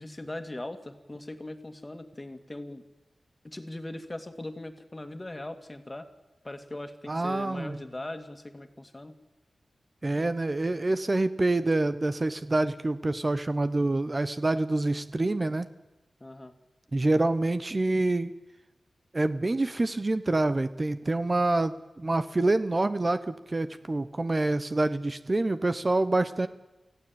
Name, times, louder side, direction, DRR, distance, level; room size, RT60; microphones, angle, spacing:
voice 1, 0.0-2.8 3.4-6.1 6.4-9.1 16.2-16.5, left 1 dB, 25° left, 9 dB, 2.3 m, -40 dB
voice 2, 7.1-7.8 10.0-15.7 16.9-18.3 19.1-26.5, right 2 dB, 35° right, 12 dB, 0.9 m, -26 dB
25.0 x 15.5 x 8.8 m, 1.1 s
wide cardioid pair, 70°, 0 cm